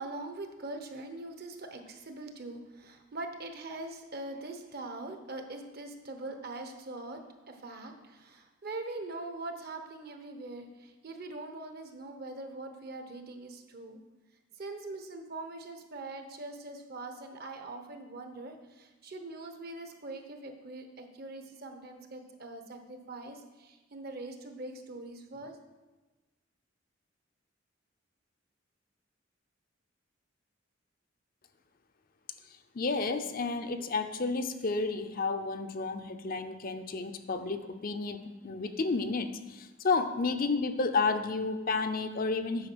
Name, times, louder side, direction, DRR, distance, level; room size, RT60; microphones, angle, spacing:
voice 1, 0.0-14.0 14.6-25.6, right 2 dB, 50° right, 6 dB, 0.9 m, -42 dB
voice 2, 32.7-42.7, left 4 dB, 45° left, 8 dB, 0.5 m, -31 dB
8.6 x 5.0 x 6.1 m, 1.2 s
head